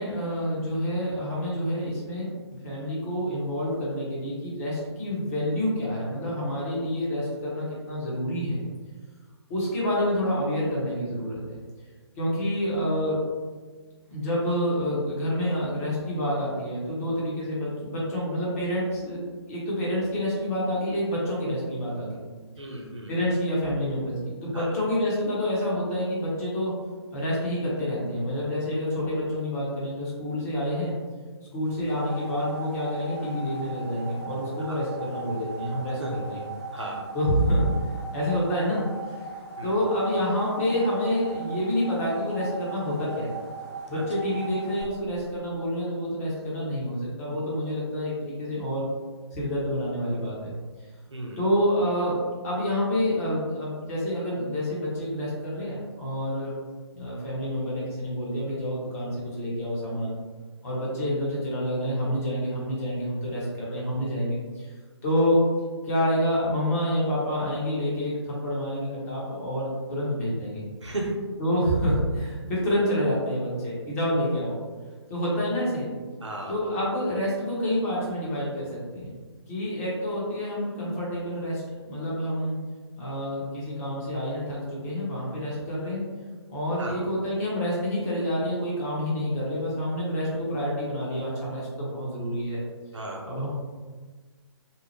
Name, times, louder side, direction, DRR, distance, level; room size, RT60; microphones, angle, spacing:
voice 1, 0.0-2.3 2.6-8.6 9.5-11.6 12.2-13.2 14.1-22.2 23.1-26.8 27.1-31.0 31.5-36.4 37.1-37.7 38.1-39.2 39.6-43.3 43.9-48.9 49.3-50.6 51.4-56.5 57.0-60.1 60.6-64.7 65.0-65.5 65.8-70.6 71.4-74.6 75.1-75.9 76.5-79.1 79.5-82.6 83.0-86.1 86.5-92.6 93.3-93.5, equal, 30° left, -6 dB, 1.0 m, -28 dB
voice 2, 22.6-23.1 24.5-24.7 34.7-34.8 36.0-36.1 36.7-37.0 39.6-39.7 43.9-44.0 51.1-51.4 70.8-71.1 76.2-76.5 86.8-87.0 92.9-93.2, right 2 dB, 80° right, -2 dB, 0.7 m, -34 dB
sound 1, 31.6-44.8, right 3 dB, 5° left, 0.4 m, -39 dB
2.8 x 2.1 x 3.0 m, 1.4 s
figure-of-eight pair, 135°, 15 cm